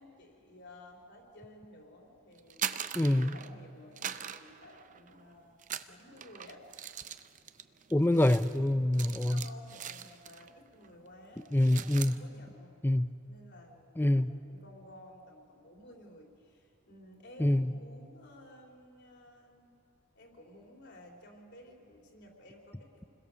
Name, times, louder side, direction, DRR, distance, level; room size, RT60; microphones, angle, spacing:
voice 1, 0.0-2.8 3.1-6.7 8.7-12.7 13.2-19.7 20.1-23.1, left 1 dB, 55° left, 0 dB, 4.1 m, -54 dB
sound 1, 2.4-3.6 4.0-5.2 5.6-10.5 10.8-11.1 11.4-12.2, right 9 dB, 35° right, 0.6 m, -41 dB
voice 2, 2.9-3.3 7.9-9.4 11.5-12.2 12.8-13.1 14.0-14.3 17.4-17.7, left 1 dB, 10° left, 13 dB, 0.5 m, -26 dB
28.5 x 21.5 x 7.0 m, 2.4 s
head